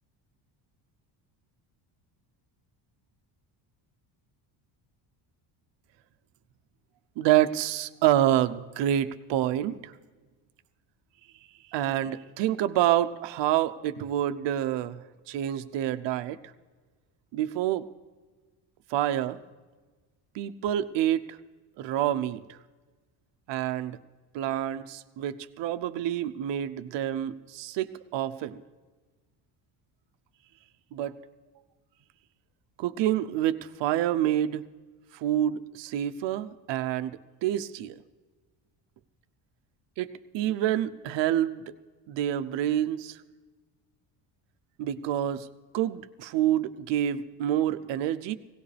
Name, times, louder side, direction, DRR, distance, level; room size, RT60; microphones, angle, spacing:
voice 1, 7.2-9.9 11.7-16.4 17.3-17.9 18.9-19.4 20.3-21.4 21.8-22.6 23.5-24.0 24.3-28.6 30.9-31.2 32.8-34.6 35.1-38.0 40.0-41.7 42.1-43.2 44.8-45.5 45.7-48.3, right 12 dB, 70° right, 11 dB, 0.8 m, -27 dB
19.0 x 17.5 x 3.4 m, 1.3 s
cardioid pair, 140°, 45 cm